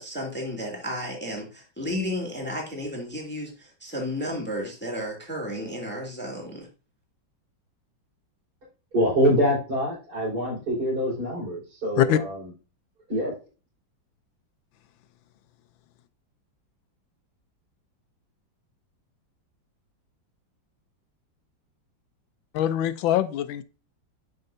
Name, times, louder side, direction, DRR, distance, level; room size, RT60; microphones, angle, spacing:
voice 1, 0.0-6.7, equal, 5° left, 2.0 m, -33 dB
voice 2, 8.9-12.5 13.1-13.3, equal, 50° right, 5.3 m, -25 dB
voice 3, 22.5-23.6, left 11 dB, 85° left, 1.4 m, -23 dB
12.0 x 5.5 x 2.6 m
omnidirectional pair, 2.1 m